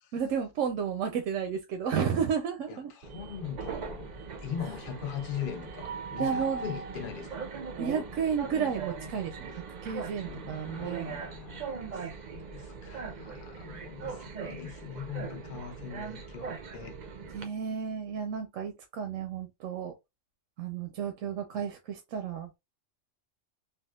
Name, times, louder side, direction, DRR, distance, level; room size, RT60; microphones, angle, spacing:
voice 1, 0.1-2.9 6.2-6.6 7.8-11.2 17.3-19.9 20.6-22.5, right 7 dB, 85° right, 0.9 m, -32 dB
voice 2, 2.7-4.1 4.4-7.4 10.2-17.0, left 8 dB, 50° left, 0.8 m, -41 dB
Train, 3.0-17.4, right 5 dB, 55° right, 0.5 m, -39 dB
3.5 x 2.3 x 2.2 m
omnidirectional pair, 1.3 m